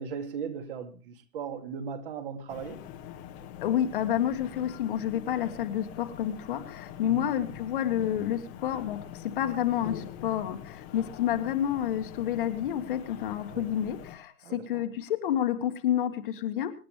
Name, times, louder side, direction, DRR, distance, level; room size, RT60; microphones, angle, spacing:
voice 1, 0.0-2.8 7.0-7.3 13.5-13.7 14.4-14.8, right 6 dB, 35° right, 2.3 m, -38 dB
sound 1, 2.5-14.2, left 10 dB, 15° left, 1.2 m, -44 dB
voice 2, 3.6-16.7, left 11 dB, 35° left, 1.7 m, -29 dB
25.5 x 10.0 x 3.3 m
hypercardioid pair, 145°, 44 cm